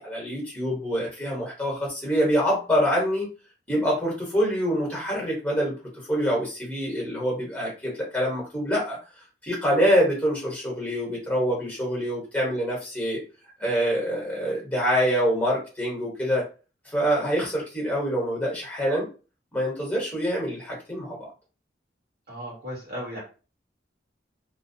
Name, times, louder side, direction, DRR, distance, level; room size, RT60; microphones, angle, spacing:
voice 1, 0.0-3.3 3.7-5.7 6.1-9.0 9.4-13.2 13.6-16.4 16.8-19.1 19.5-21.3, equal, 10° left, -3 dB, 1.1 m, -25 dB
voice 2, 22.3-23.2, equal, 55° right, -3 dB, 1.3 m, -35 dB
2.5 x 2.2 x 2.7 m, 0.34 s
head